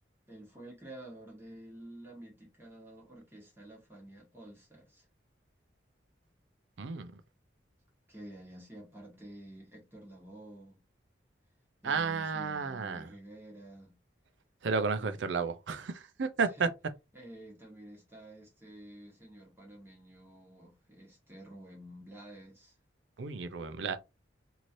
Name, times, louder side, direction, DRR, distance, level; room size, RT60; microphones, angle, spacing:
voice 1, 0.3-5.0 8.1-10.8 11.8-13.9 14.9-15.4 16.6-16.7 17.1-22.8, right 1 dB, 10° right, 1.1 m, -50 dB
voice 2, 6.8-7.2 11.8-13.1 14.6-16.7 23.2-24.0, right 5 dB, 80° right, 0.5 m, -32 dB
3.1 x 2.8 x 2.6 m
head